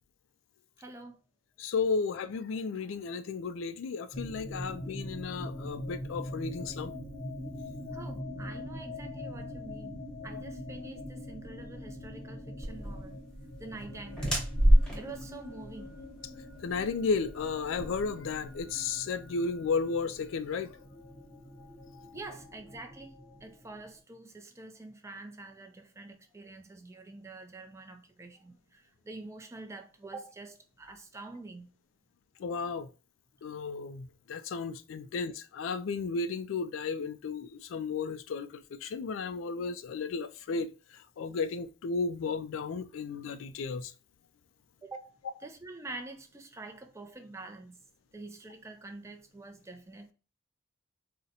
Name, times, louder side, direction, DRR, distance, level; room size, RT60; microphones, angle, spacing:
voice 1, 0.8-1.2 7.9-13.2 13.6-14.4 15.0-16.0 22.1-23.2 23.4-31.7 35.0-35.1 44.8-47.8 48.1-50.1, right 2 dB, 15° right, 0.4 m, -46 dB
voice 2, 1.6-6.9 16.6-20.7 32.4-32.9 33.4-40.7 41.2-43.9, left 4 dB, 70° left, 0.3 m, -33 dB
sound 1, 4.1-24.0, left 1 dB, 50° left, 0.8 m, -43 dB
sound 2, 12.6-18.7, equal, 5° left, 1.0 m, -29 dB
3.9 x 2.1 x 2.7 m
head